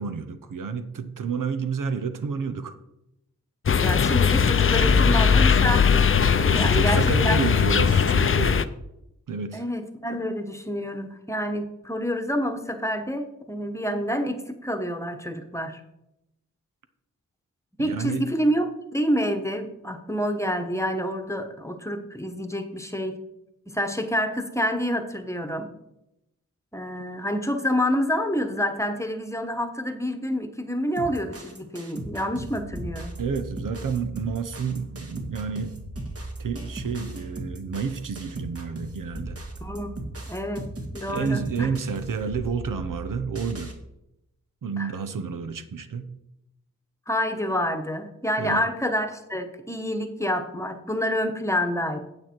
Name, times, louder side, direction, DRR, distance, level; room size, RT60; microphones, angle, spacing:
voice 1, 0.0-2.7 6.5-8.6 9.3-9.6 17.8-18.2 33.2-35.7 36.4-39.4 41.1-43.7 44.6-46.1 48.4-48.7, right 5 dB, 85° right, 10 dB, 0.8 m, -30 dB
sound 1, 3.7-8.6, left 6 dB, 40° left, 0.5 m, -19 dB
voice 2, 3.8-7.4 9.5-15.8 17.8-23.2 23.7-25.7 26.7-33.1 39.6-41.7 44.8-44.9 47.1-52.0, equal, 10° left, 6 dB, 1.1 m, -28 dB
sound 2, 31.0-43.7, right 1 dB, 50° right, 1.7 m, -37 dB
8.9 x 7.8 x 4.5 m, 0.86 s
wide cardioid pair, 70°, 31 cm